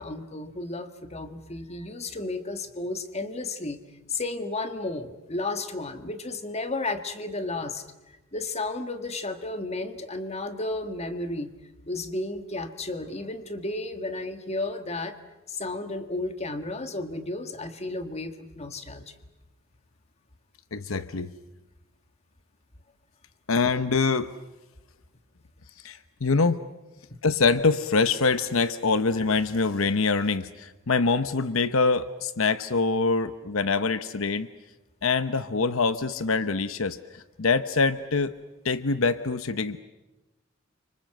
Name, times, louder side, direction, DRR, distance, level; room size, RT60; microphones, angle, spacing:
voice 1, 0.0-3.8 4.1-11.5 11.9-15.2 15.5-19.2, left 2 dB, 30° left, 8 dB, 1.7 m, -33 dB
voice 2, 20.7-21.3 23.5-24.3 25.8-26.6 27.2-34.5 35.0-38.3 38.6-39.8, left 4 dB, 75° left, 12 dB, 0.9 m, -24 dB
30.0 x 25.5 x 7.8 m, 1.0 s
head